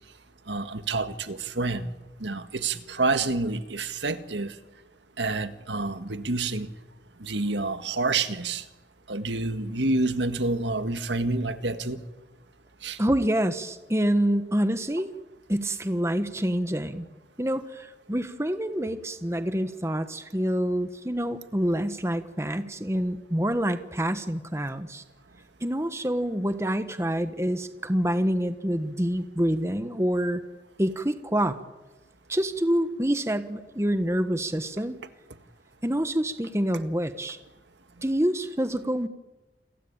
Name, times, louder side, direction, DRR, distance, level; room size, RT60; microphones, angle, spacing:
voice 1, 0.5-1.9 2.2-4.5 5.2-6.7 7.2-8.6 9.1-12.0 12.8-13.0, right 3 dB, 90° right, 1.8 m, -28 dB
voice 2, 13.0-15.1 15.5-17.1 17.4-25.0 25.6-30.4 30.8-31.6 32.3-35.0 35.8-37.4 38.0-39.1, equal, 15° right, 1.3 m, -27 dB
29.0 x 21.5 x 8.8 m
head